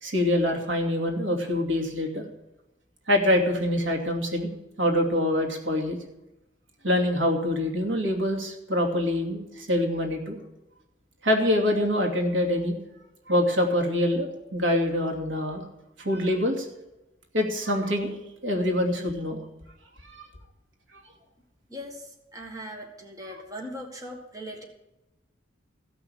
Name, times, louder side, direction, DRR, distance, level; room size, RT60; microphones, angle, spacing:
voice 1, 0.0-2.3 3.1-4.5 4.8-6.0 6.8-10.4 11.2-12.8 13.3-15.6 16.0-16.7 17.3-18.2 18.4-19.4 20.0-20.3 23.2-23.3, left 1 dB, 80° right, 2 dB, 2.7 m, -25 dB
voice 2, 21.7-24.7, equal, 20° right, 1 dB, 1.8 m, -40 dB
15.5 x 6.1 x 8.7 m, 0.97 s
head